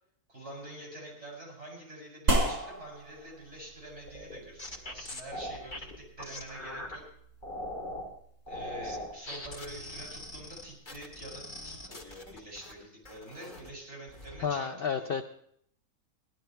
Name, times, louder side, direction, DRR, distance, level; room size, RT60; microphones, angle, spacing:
voice 1, 0.3-7.0 8.5-15.2, right 1 dB, 45° right, -2 dB, 7.7 m, -46 dB
sound 1, 2.3-11.0, right 1 dB, 75° right, 3.1 m, -37 dB
sound 2, 4.1-7.0 7.4-8.1 8.5-12.7 13.0-13.7 14.1-14.4, left 1 dB, 30° left, 2.0 m, -41 dB
voice 2, 14.4-15.3, left 6 dB, 55° left, 8 dB, 0.6 m, -31 dB
18.0 x 12.0 x 4.5 m, 0.70 s
omnidirectional pair, 1.6 m